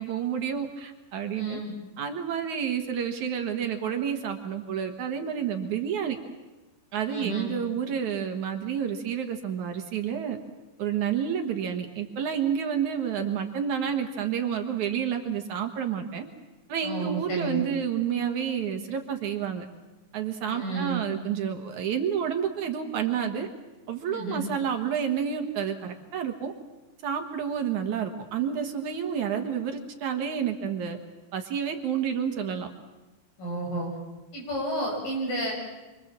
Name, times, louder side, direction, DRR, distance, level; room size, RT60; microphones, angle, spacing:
voice 1, 0.0-1.6 2.0-6.2 6.9-10.4 10.8-16.3 16.7-19.7 20.1-23.5 23.9-26.5 27.0-31.0 31.3-32.7, right 8 dB, 65° right, 5 dB, 2.6 m, -29 dB
voice 2, 1.4-1.7 7.1-7.5 16.8-17.6 20.4-21.0 24.1-24.4 33.4-33.9 34.3-35.5, right 2 dB, 70° left, -1 dB, 9.0 m, -31 dB
27.0 x 24.5 x 7.5 m, 1.1 s
omnidirectional pair, 4.1 m